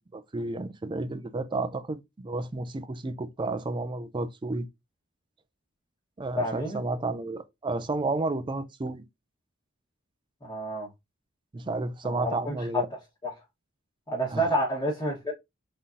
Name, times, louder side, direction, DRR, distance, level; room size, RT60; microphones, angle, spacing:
voice 1, 0.0-4.7 6.2-9.0 11.5-12.9 14.3-14.5, right 2 dB, 25° right, 0.4 m, -32 dB
voice 2, 6.4-6.8 10.4-10.9 12.0-12.8 13.2-13.3 14.1-15.3, equal, 20° left, 1.3 m, -29 dB
3.8 x 3.7 x 2.7 m
head